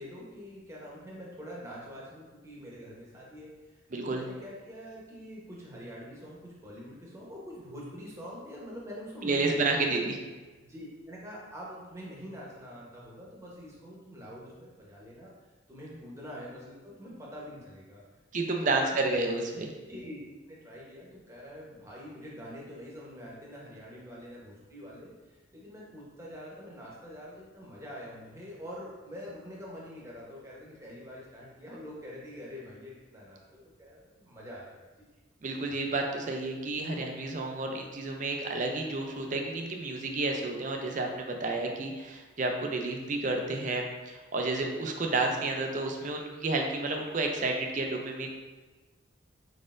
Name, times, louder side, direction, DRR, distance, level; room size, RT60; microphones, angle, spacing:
voice 1, 0.0-9.9 10.6-15.3 15.7-18.0 18.5-18.8 19.9-20.2 20.5-35.1, equal, 15° right, -5 dB, 0.9 m, -45 dB
voice 2, 3.9-4.2 9.2-10.2 18.3-19.7 35.4-48.3, right 2 dB, 40° right, 2 dB, 0.4 m, -31 dB
5.0 x 4.0 x 2.5 m, 1.3 s
head